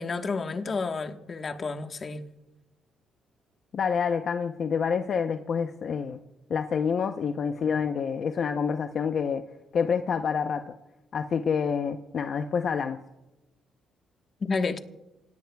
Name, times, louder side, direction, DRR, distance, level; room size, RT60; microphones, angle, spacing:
voice 1, 0.0-2.2 14.4-14.8, left 4 dB, 40° left, 1.3 m, -30 dB
voice 2, 3.7-6.2 6.5-9.4 9.7-10.7 11.1-13.0, left 6 dB, 55° left, 0.7 m, -27 dB
27.5 x 18.0 x 2.3 m
cardioid pair, 90°, 0 cm